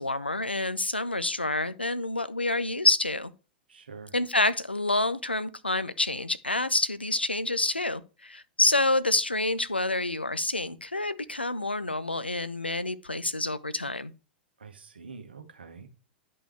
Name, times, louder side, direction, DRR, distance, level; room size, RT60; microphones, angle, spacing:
voice 1, 0.0-3.3 4.1-14.1, left 2 dB, 90° left, 0.6 m, -28 dB
voice 2, 3.7-4.1 14.6-15.9, right 5 dB, 75° right, 1.5 m, -45 dB
11.0 x 5.4 x 3.3 m
figure-of-eight pair, 95°, 6 cm